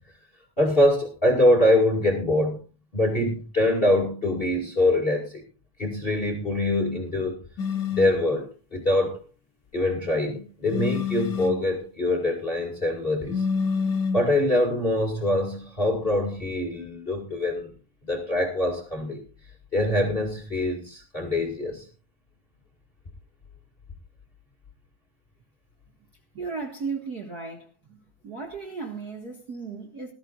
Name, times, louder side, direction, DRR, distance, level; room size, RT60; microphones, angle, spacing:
voice 1, 0.6-2.6 2.9-5.4 5.8-7.4 8.0-9.2 9.7-13.4 14.1-17.7 18.1-19.2 19.7-21.8, left 1 dB, 20° left, 2.0 m, -24 dB
sound 1, 7.6-8.2 10.7-11.7 13.3-14.3, left 5 dB, 75° left, 0.9 m, -27 dB
voice 2, 26.3-28.0 28.2-30.1, right 4 dB, 35° right, 1.9 m, -35 dB
19.5 x 13.5 x 2.5 m
omnidirectional pair, 3.5 m